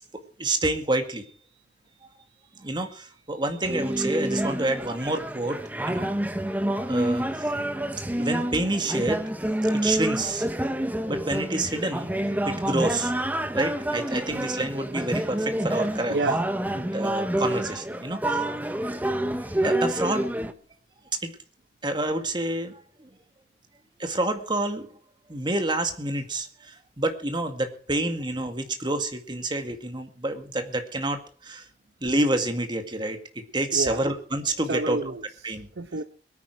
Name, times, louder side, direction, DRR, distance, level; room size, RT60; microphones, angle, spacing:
voice 1, 0.4-1.3 2.6-5.6 5.9-6.1 6.9-7.5 8.1-9.2 9.7-10.5 11.1-12.1 12.5-13.1 13.5-16.2 16.7-18.4 18.8-19.0 19.6-20.3 21.2-21.3 21.8-23.1 24.0-24.9 25.3-31.6 32.0-35.0 35.4-35.7, right 2 dB, 25° right, 7 dB, 2.0 m, -28 dB
sound 1, 3.6-20.5, right 1 dB, 10° right, 0.9 m, -28 dB
voice 2, 16.1-16.4 33.7-34.0 34.7-36.0, right 3 dB, 75° right, 11 dB, 0.9 m, -29 dB
22.5 x 9.6 x 4.7 m, 0.41 s
head